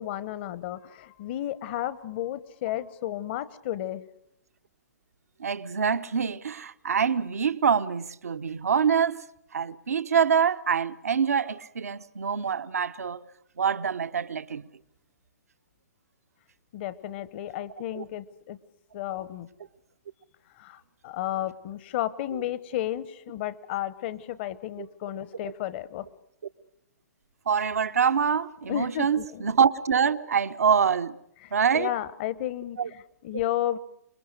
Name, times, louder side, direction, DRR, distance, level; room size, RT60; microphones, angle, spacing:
voice 1, 0.0-4.0 16.7-18.6 18.9-19.5 20.6-26.1 28.7-29.5 31.4-33.8, left 12 dB, 40° left, 1.1 m, -33 dB
voice 2, 5.4-9.2 9.5-13.2 13.6-14.6 17.9-18.0 24.8-24.9 27.5-31.2 31.5-31.9 32.8-32.9, right 7 dB, 65° right, 0.8 m, -25 dB
26.5 x 22.5 x 6.5 m
figure-of-eight pair, 115°, 9 cm